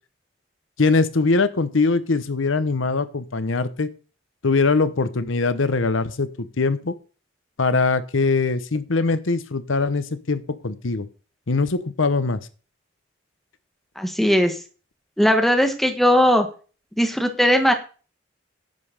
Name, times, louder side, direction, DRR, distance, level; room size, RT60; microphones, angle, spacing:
voice 1, 0.8-3.9 4.4-6.9 7.6-11.1 11.5-12.4, left 3 dB, 85° left, 13 dB, 0.9 m, -22 dB
voice 2, 14.0-14.5 15.2-16.5 17.0-17.7, equal, ahead, 5 dB, 1.3 m, -18 dB
10.5 x 5.4 x 6.5 m, 0.37 s
head